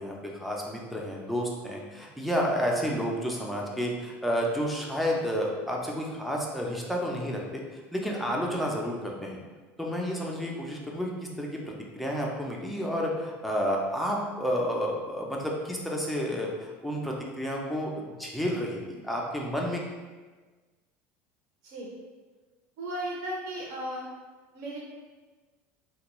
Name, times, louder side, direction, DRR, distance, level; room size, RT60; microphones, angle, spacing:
voice 1, 0.0-7.6 7.9-9.4 9.8-11.1 11.4-11.6 12.0-19.8, equal, ahead, -2 dB, 0.4 m, -30 dB
voice 2, 22.8-24.0 24.5-24.8, right 1 dB, 60° right, -5 dB, 0.6 m, -35 dB
3.3 x 2.2 x 3.0 m, 1.3 s
cardioid pair, 160°, 6 cm